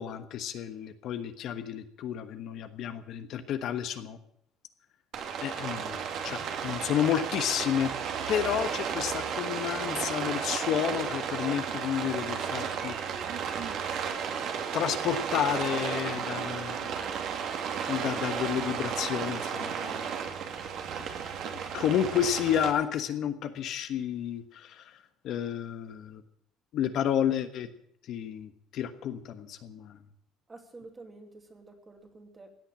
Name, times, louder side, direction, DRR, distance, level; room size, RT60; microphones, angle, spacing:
voice 1, 0.0-4.2 5.4-7.9 8.3-13.0 14.7-16.9 17.9-20.1 21.5-24.8 25.2-26.2 26.7-27.7 28.1-30.0, left 9 dB, 55° left, 9 dB, 1.3 m, -31 dB
Rain, 5.1-22.7, right 7 dB, 50° right, 2.5 m, -33 dB
voice 2, 30.5-32.5, right 3 dB, 15° right, 5 dB, 2.6 m, -49 dB
16.5 x 9.1 x 8.8 m, 0.70 s
cardioid pair, 145°, 0 cm